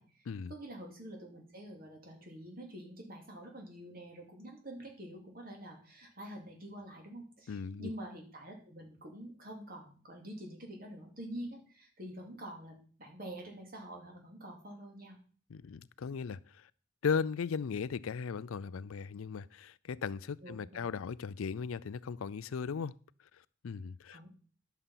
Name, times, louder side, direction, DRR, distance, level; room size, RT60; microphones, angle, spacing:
voice 1, 0.0-15.2 20.4-20.8 24.1-24.3, right 1 dB, 45° right, 2.8 m, -47 dB
voice 2, 7.5-7.9 15.5-16.7 17.0-22.9 23.6-24.3, left 6 dB, 80° left, 0.4 m, -37 dB
11.0 x 6.9 x 5.6 m
head